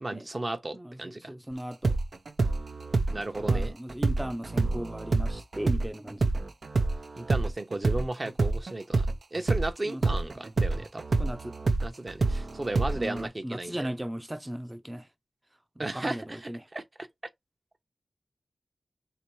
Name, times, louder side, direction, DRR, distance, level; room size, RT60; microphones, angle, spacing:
voice 1, 0.0-1.3 3.1-3.8 7.2-11.0 11.8-13.9 15.8-16.8, right 2 dB, 35° right, 0.9 m, -35 dB
voice 2, 0.7-2.0 3.5-6.3 9.8-10.0 10.3-10.4 11.2-11.6 13.0-15.1 15.8-16.6, equal, 15° right, 0.6 m, -37 dB
sound 1, 1.8-9.7 10.0-13.3, right 3 dB, 60° right, 0.6 m, -27 dB
3.1 x 2.9 x 4.5 m
cardioid pair, 55°, 0 cm